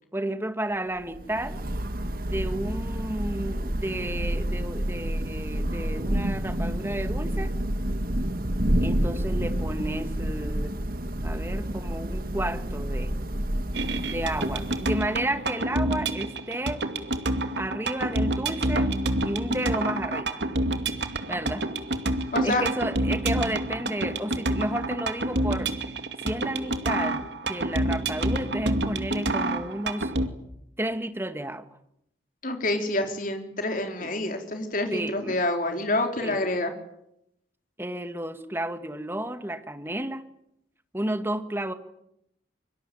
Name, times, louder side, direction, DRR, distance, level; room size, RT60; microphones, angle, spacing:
voice 1, 0.1-1.6 2.3-7.5 8.8-10.8 11.2-13.1 14.1-16.9 17.6-18.9 19.2-20.4 21.3-21.7 22.4-25.7 26.2-30.1 30.8-31.7 34.0-34.1 34.9-35.4 36.2-36.4 37.8-40.2 40.9-41.7, right 1 dB, 10° right, 8 dB, 1.8 m, -32 dB
Thunder / Rain, 1.0-15.4, right 1 dB, 50° right, 1.9 m, -29 dB
sound 1, 13.7-30.3, right 1 dB, 65° right, 2.4 m, -28 dB
voice 2, 22.3-22.6 32.4-36.7, left 2 dB, 45° left, 4 dB, 4.0 m, -27 dB
24.5 x 24.0 x 9.2 m, 0.79 s
head